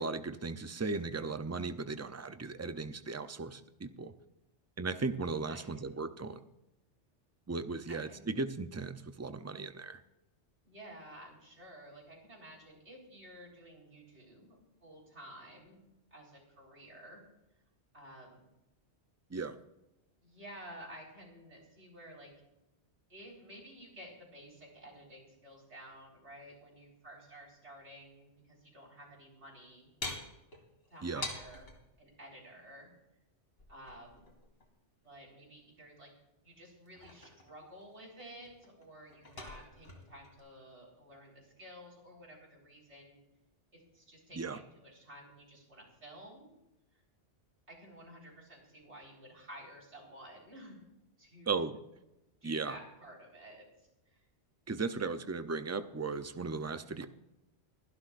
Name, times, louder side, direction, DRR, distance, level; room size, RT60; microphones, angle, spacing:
voice 1, 0.0-4.1 4.8-6.4 7.5-10.0 19.3-19.6 31.0-31.2 44.3-44.6 51.5-51.8 52.4-52.7 54.7-57.1, right 4 dB, 25° right, 10 dB, 0.3 m, -36 dB
voice 2, 5.4-6.1 7.9-8.3 10.6-14.5 14.8-15.8 16.1-17.2 17.9-18.4 20.2-22.3 23.1-29.9 30.9-31.7 32.0-32.9 33.7-34.2 35.0-36.1 36.4-43.2 43.7-46.5 46.9-47.0 47.7-51.6 52.4-54.3, equal, 70° right, -2 dB, 4.5 m, -52 dB
sound 1, 30.0-31.8 33.6-34.7 36.7-37.8 38.2-40.4, left 3 dB, 55° left, 2.6 m, -45 dB
23.5 x 11.5 x 2.5 m, 0.94 s
omnidirectional pair, 1.2 m